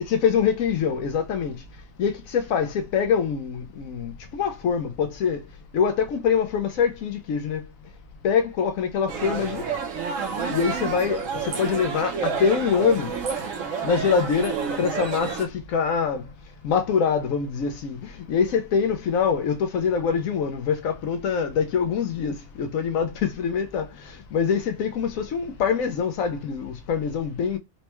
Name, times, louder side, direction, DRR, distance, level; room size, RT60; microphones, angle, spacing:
voice 1, 0.0-1.6 2.0-5.4 5.7-7.6 8.2-9.6 10.5-13.1 13.8-16.3 16.6-27.6, left 6 dB, 80° left, 1.1 m, -24 dB
sound 1, 9.1-15.4, right 6 dB, 70° right, 1.2 m, -29 dB
4.2 x 2.2 x 3.0 m
omnidirectional pair, 1.4 m